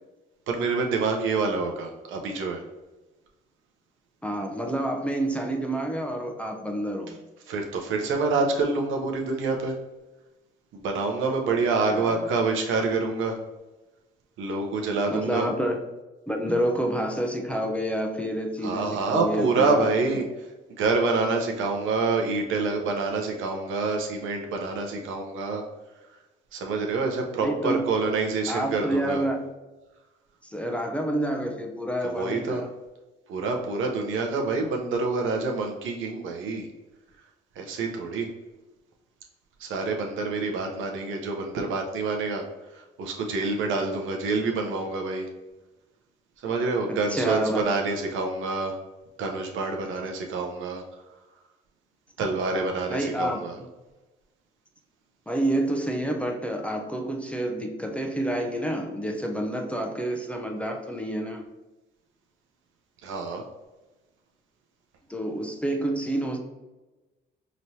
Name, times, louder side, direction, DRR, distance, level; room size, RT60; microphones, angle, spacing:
voice 1, 0.5-2.6 7.5-9.8 10.7-13.4 14.4-15.5 18.6-20.2 20.8-25.6 26.5-29.2 32.0-32.6 33.3-36.7 37.6-38.3 39.6-42.4 42.7-45.3 46.4-48.8 49.2-50.8 52.2-53.6 63.0-63.4, right 3 dB, 80° right, 2 dB, 0.8 m, -27 dB
voice 2, 4.2-7.2 11.9-12.2 15.1-15.8 16.3-19.8 27.4-27.9 28.5-29.5 30.5-32.7 46.9-47.6 52.9-53.4 55.3-61.4 65.1-66.4, right 1 dB, 5° left, 2 dB, 0.6 m, -28 dB
5.1 x 3.0 x 2.8 m, 1.1 s
cardioid pair, 90°, 20 cm